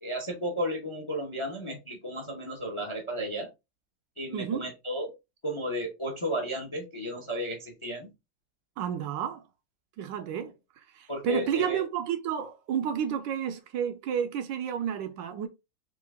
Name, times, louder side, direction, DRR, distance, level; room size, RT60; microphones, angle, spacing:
voice 1, 0.0-3.5 4.2-5.1 5.4-8.1 11.1-11.8, equal, 35° left, 0.5 m, -33 dB
voice 2, 4.3-4.6 8.8-9.4 10.0-10.5 10.9-15.5, right 8 dB, 75° right, 1.2 m, -31 dB
4.5 x 2.4 x 3.6 m
omnidirectional pair, 2.3 m